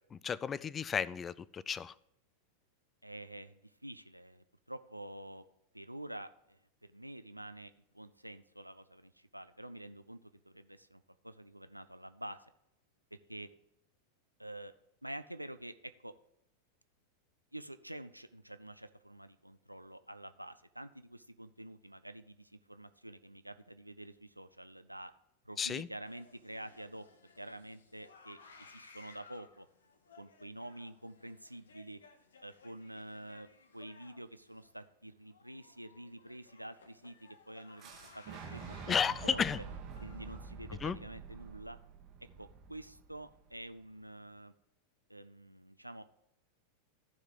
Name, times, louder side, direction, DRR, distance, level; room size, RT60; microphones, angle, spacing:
voice 1, 0.1-1.9 25.6-25.9 38.9-39.6 40.8-41.0, left 7 dB, 20° left, 21 dB, 0.3 m, -33 dB
voice 2, 3.0-5.4 5.7-12.5 13.1-13.5 14.4-14.7 15.0-16.1 17.5-25.1 25.4-27.1 27.4-29.7 30.2-32.0 32.4-33.5 33.7-38.9 39.2-39.4 40.0-41.8 42.4-44.5 45.1-46.1, right 1 dB, 90° right, 11 dB, 0.4 m, -48 dB
sound 1, 26.0-40.4, left 4 dB, 65° left, 1.0 m, -60 dB
Boom, 37.8-43.7, right 5 dB, 35° right, 1.2 m, -48 dB
14.0 x 4.8 x 3.8 m, 0.81 s
figure-of-eight pair, 90°, 0 cm